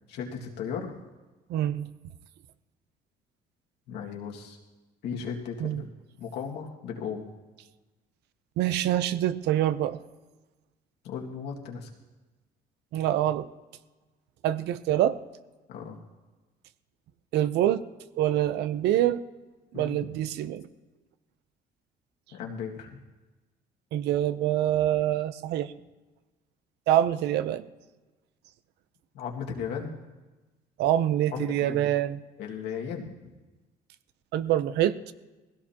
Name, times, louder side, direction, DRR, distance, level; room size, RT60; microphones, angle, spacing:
voice 1, 0.1-0.9 3.9-4.6 5.0-7.3 11.0-11.9 15.7-16.0 19.7-20.0 22.3-23.0 29.1-29.9 31.3-31.9 32.4-33.3, left 6 dB, 80° left, 0 dB, 2.1 m, -36 dB
voice 2, 1.5-1.9 5.6-5.8 8.6-10.0 12.9-13.5 14.4-15.2 17.3-17.8 18.1-19.2 19.7-20.7 23.9-25.7 26.9-27.6 30.8-32.2 34.3-35.0, right 12 dB, 80° right, 13 dB, 0.7 m, -25 dB
20.0 x 16.5 x 2.9 m, 1.2 s
cardioid pair, 110°, 17 cm